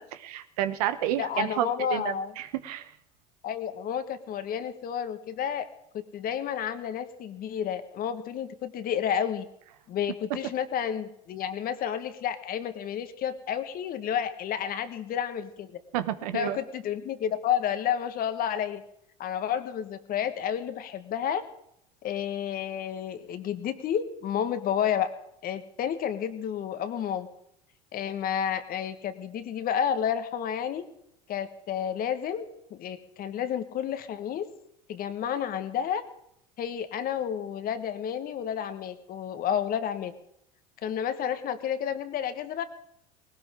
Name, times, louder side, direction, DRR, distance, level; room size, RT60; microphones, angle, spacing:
voice 1, 0.0-2.9 15.9-16.6, right 11 dB, 75° right, 12 dB, 1.1 m, -30 dB
voice 2, 1.2-2.3 3.4-5.7 5.9-9.5 9.9-15.8 16.3-18.8 19.2-21.4 22.0-25.1 25.4-27.3 27.9-30.8 31.3-34.5 34.9-36.0 36.6-40.1 40.8-42.6, left 9 dB, 50° left, 10 dB, 1.6 m, -31 dB
19.0 x 17.5 x 3.8 m, 0.77 s
hypercardioid pair, 80°, 20 cm